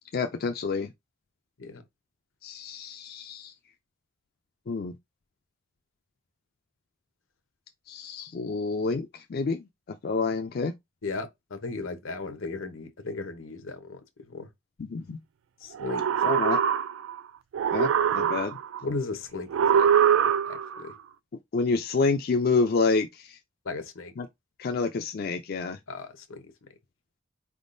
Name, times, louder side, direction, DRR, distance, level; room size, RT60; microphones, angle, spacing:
voice 1, 0.1-0.9 2.4-3.5 4.7-4.9 7.9-9.6 10.0-10.7 14.8-15.2 16.2-16.6 17.7-18.6 21.5-23.4 24.2-24.3 24.6-25.8, left 4 dB, 50° left, 0.4 m, -28 dB
voice 2, 11.0-14.5 15.6-16.0 18.8-19.9 20.5-20.9 23.6-24.1 25.9-26.5, left 3 dB, 80° left, 0.8 m, -36 dB
sound 1, 15.8-17.2 17.5-18.8 19.5-20.8, right 8 dB, 70° right, 0.3 m, -23 dB
4.4 x 3.5 x 2.6 m
head